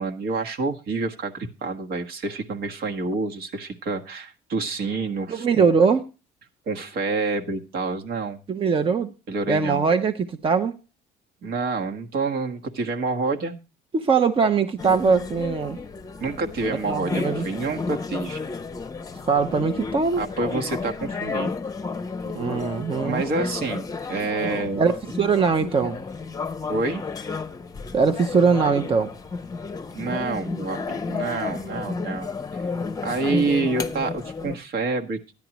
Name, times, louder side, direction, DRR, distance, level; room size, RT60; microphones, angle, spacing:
voice 1, 0.0-5.7 6.7-8.4 9.3-9.8 11.4-13.6 16.2-18.4 20.2-21.6 23.0-24.9 26.7-27.0 29.9-32.6 33.0-35.3, right 3 dB, 65° right, 4 dB, 1.6 m, -28 dB
voice 2, 5.3-6.0 8.5-9.1 9.5-10.7 13.9-15.8 16.9-17.4 19.3-20.2 22.3-23.2 24.8-26.0 27.9-29.1, right 5 dB, 30° right, 8 dB, 0.8 m, -21 dB
sound 1, 14.8-34.6, left 4 dB, 20° left, 0.8 m, -32 dB
13.5 x 10.5 x 2.9 m, 0.31 s
cardioid pair, 110°, 17 cm